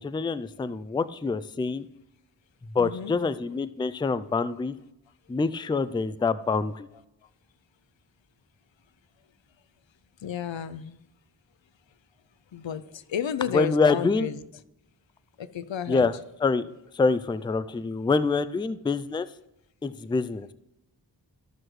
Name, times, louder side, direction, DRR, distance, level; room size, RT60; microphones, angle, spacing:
voice 1, 0.0-1.9 2.7-4.8 5.3-6.9 13.5-14.3 15.9-16.7 16.9-19.3 19.8-20.5, left 4 dB, 10° left, 0.3 m, -26 dB
voice 2, 2.8-3.1 10.2-11.0 12.5-14.4 15.4-16.1, left 9 dB, 90° left, 0.6 m, -32 dB
14.5 x 6.1 x 3.2 m
wide cardioid pair, 70°, 44 cm